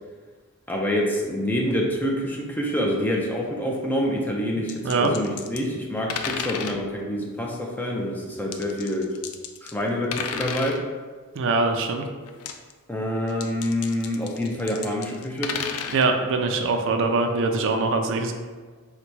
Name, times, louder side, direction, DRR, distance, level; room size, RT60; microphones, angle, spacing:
voice 1, 0.7-9.1 9.6-10.8 12.9-15.6, equal, 10° left, -1 dB, 0.4 m, -27 dB
sound 1, 4.7-5.7 6.1-6.8 8.5-9.8 10.1-10.8 12.3-12.7 13.3-16.1, left 6 dB, 80° left, 0.4 m, -32 dB
voice 2, 11.4-12.0 15.9-18.3, right 3 dB, 60° right, 5 dB, 0.4 m, -23 dB
4.0 x 2.2 x 4.5 m, 1.5 s
head